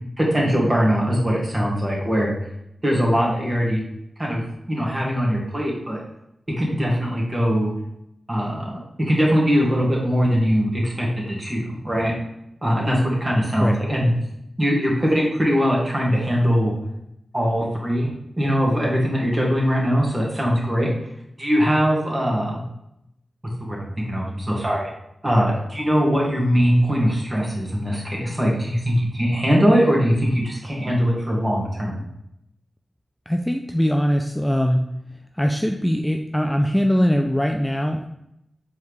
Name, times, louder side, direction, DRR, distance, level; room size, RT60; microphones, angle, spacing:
voice 1, 0.2-2.3 2.8-3.8 4.2-4.4 4.7-6.0 6.6-7.7 8.3-12.1 12.6-14.1 14.6-16.7 17.3-20.9 21.4-22.6 23.7-24.9 25.2-32.0, equal, 30° right, -3 dB, 1.7 m, -21 dB
voice 2, 33.3-34.9 35.3-38.1, equal, 5° left, 3 dB, 0.4 m, -21 dB
4.5 x 3.6 x 3.1 m, 0.80 s
cardioid pair, 45°, 0 cm